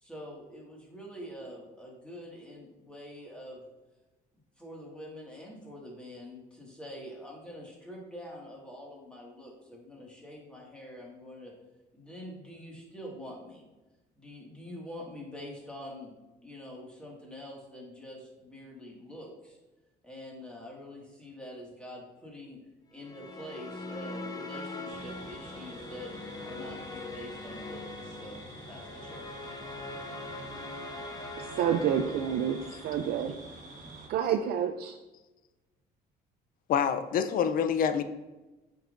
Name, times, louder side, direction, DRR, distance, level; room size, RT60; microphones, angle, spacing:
voice 1, 0.0-3.6 4.6-11.5 11.9-13.6 14.2-16.1 16.4-19.6 20.0-22.6 22.9-26.1 26.4-28.4 28.7-29.3, equal, 5° left, -3 dB, 1.9 m, -45 dB
sound 1, 23.0-33.4, left 2 dB, 20° left, 0.7 m, -42 dB
sound 2, 24.9-34.1, right 2 dB, 50° right, 1.4 m, -48 dB
voice 2, 31.4-33.3 34.1-35.0, right 8 dB, 70° right, 7 dB, 0.4 m, -29 dB
voice 3, 36.7-38.0, left 7 dB, 60° left, 10 dB, 0.5 m, -26 dB
7.5 x 5.3 x 2.5 m, 1.1 s
cardioid pair, 110°, 17 cm